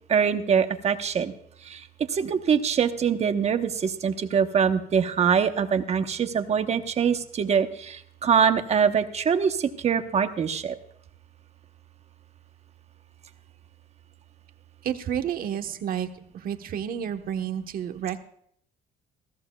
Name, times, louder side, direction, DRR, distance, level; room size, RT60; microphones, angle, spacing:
voice 1, 0.1-1.3 1.6-1.8 2.1-10.7, right 7 dB, 40° right, 8 dB, 1.0 m, -24 dB
voice 2, 14.8-16.1 16.3-18.2, right 9 dB, 60° right, 7 dB, 1.1 m, -30 dB
20.5 x 14.5 x 2.3 m, 0.68 s
cardioid pair, 110°, 17 cm